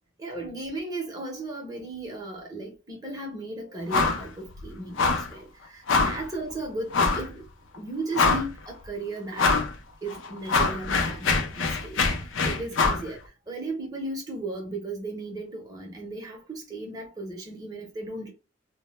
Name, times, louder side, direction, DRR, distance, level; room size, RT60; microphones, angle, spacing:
voice 1, 0.2-5.0 5.3-7.4 7.8-9.5 10.0-12.0 12.4-13.2 13.5-18.3, right 2 dB, 20° right, 0.6 m, -35 dB
sound 1, 3.9-4.3 4.5-4.6 5.0-5.3 5.9-6.2 6.9-7.3 7.7-7.8 8.1-8.7 9.4-9.7 10.1-13.1, left 4 dB, 75° left, 0.5 m, -24 dB
2.1 x 2.0 x 2.9 m
head